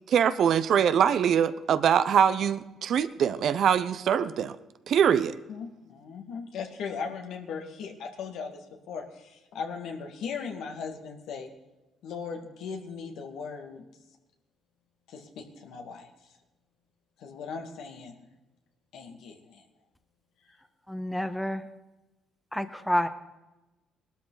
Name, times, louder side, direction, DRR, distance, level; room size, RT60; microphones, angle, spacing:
voice 1, 0.1-4.5 4.9-5.3, right 8 dB, 65° right, 13 dB, 0.8 m, -23 dB
voice 2, 5.5-11.5 12.0-13.9 15.1-16.1 17.2-18.3 18.9-19.6, left 5 dB, 75° left, 3 dB, 2.2 m, -38 dB
voice 3, 20.9-21.7 22.5-23.1, left 1 dB, 5° left, 9 dB, 1.3 m, -29 dB
20.0 x 12.5 x 4.0 m, 1.1 s
supercardioid pair, 75°, 0 cm